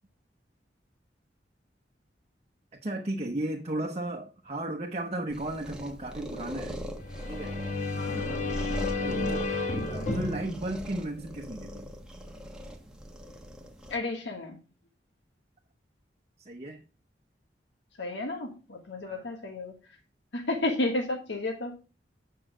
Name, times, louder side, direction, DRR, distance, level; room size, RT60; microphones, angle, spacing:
voice 1, 2.7-6.8 7.3-7.5 8.2-8.6 9.0-9.5 9.9-11.9 16.4-16.8 19.1-19.2, right 1 dB, 35° right, 2 dB, 1.0 m, -35 dB
sound 1, 5.3-14.0, equal, 5° right, 1.3 m, -40 dB
sound 2, 7.0-11.7, left 3 dB, 45° left, 1.3 m, -33 dB
voice 2, 7.9-9.4 13.9-14.6 18.0-19.7 20.3-21.8, left 2 dB, 90° left, 2 dB, 1.5 m, -33 dB
8.5 x 5.6 x 4.9 m, 0.34 s
head